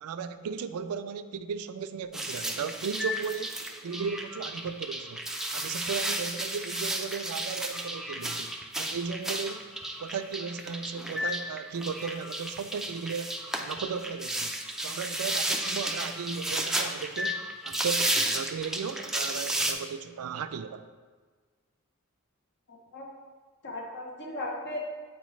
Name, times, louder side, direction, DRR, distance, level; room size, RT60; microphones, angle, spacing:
voice 1, 0.0-9.7 10.0-13.3 13.6-14.5 14.8-20.9, right 6 dB, 80° right, 11 dB, 0.4 m, -36 dB
sound 1, 2.1-19.7, right 1 dB, ahead, 0.3 m, -33 dB
voice 2, 22.7-23.1 23.6-24.8, left 1 dB, 55° left, -1 dB, 0.7 m, -37 dB
8.0 x 4.5 x 3.1 m, 1.5 s
head